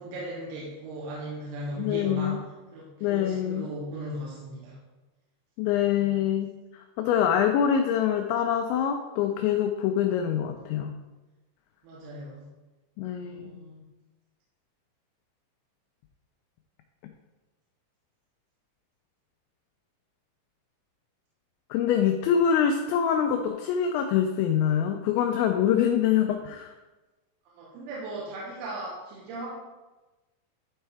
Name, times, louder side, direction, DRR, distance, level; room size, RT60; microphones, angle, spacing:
voice 1, 0.0-2.4 2.7-4.8 6.0-6.1 11.8-12.5 13.2-13.9 27.6-29.5, right 1 dB, 80° right, -6 dB, 3.6 m, -37 dB
voice 2, 1.8-2.4 3.0-3.7 5.6-6.5 6.7-10.9 13.0-13.6 21.7-26.7, left 9 dB, 85° left, 4 dB, 2.6 m, -25 dB
12.5 x 4.4 x 3.4 m, 1.1 s
omnidirectional pair, 5.8 m